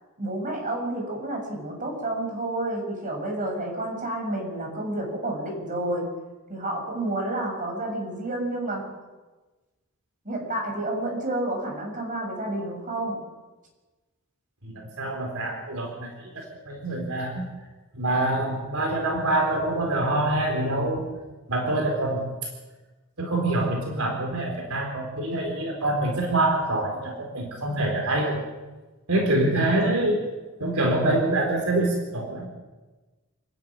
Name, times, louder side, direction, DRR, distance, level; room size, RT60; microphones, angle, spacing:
voice 1, 0.2-6.1 6.5-8.8 10.2-13.2, right 1 dB, 40° right, 1 dB, 7.4 m, -30 dB
voice 2, 14.6-17.4 17.9-21.1 21.5-22.2 23.2-28.4 29.1-30.2 30.6-32.5, right 1 dB, 80° right, 1 dB, 4.3 m, -25 dB
29.5 x 11.0 x 9.5 m, 1.2 s
head